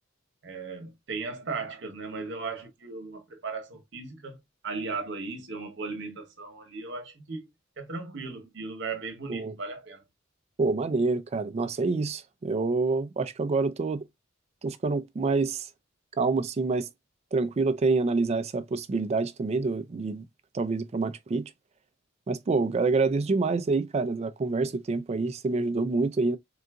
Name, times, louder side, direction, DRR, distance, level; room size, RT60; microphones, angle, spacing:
voice 1, 0.4-7.5 7.8-10.0, right 4 dB, 65° right, 0.9 m, -37 dB
voice 2, 10.6-14.1 14.6-15.7 16.2-16.9 17.3-20.3 20.5-21.5 22.3-26.4, right 3 dB, 35° right, 0.3 m, -27 dB
3.8 x 2.5 x 2.2 m
head